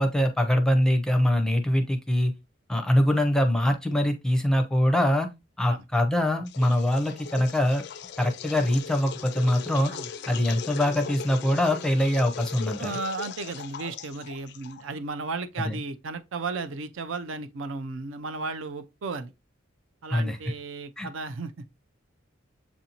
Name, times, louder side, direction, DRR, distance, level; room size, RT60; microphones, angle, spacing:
voice 1, 0.0-2.3 2.7-5.3 5.6-7.8 8.2-9.9 10.3-12.9 15.6-15.8 20.1-20.4 21.0-21.1, left 1 dB, 5° left, 0.5 m, -23 dB
sound 1, 6.5-15.0, left 6 dB, 55° left, 0.4 m, -39 dB
voice 2, 12.8-19.3 20.0-21.5, right 3 dB, 80° right, 0.5 m, -34 dB
7.1 x 2.6 x 2.8 m
head